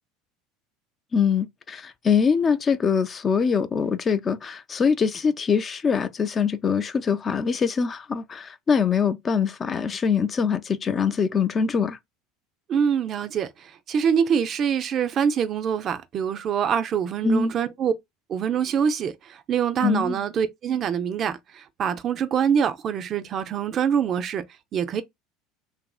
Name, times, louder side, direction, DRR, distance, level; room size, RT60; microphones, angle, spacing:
voice 1, 1.1-12.0 17.2-17.5 19.8-20.2, left 6 dB, 30° left, 0.3 m, -23 dB
voice 2, 12.7-13.5 13.9-17.9 18.3-19.1 19.5-24.4 24.7-25.0, right 7 dB, 45° right, 0.4 m, -24 dB
2.8 x 2.5 x 2.3 m
supercardioid pair, 95°, 0 cm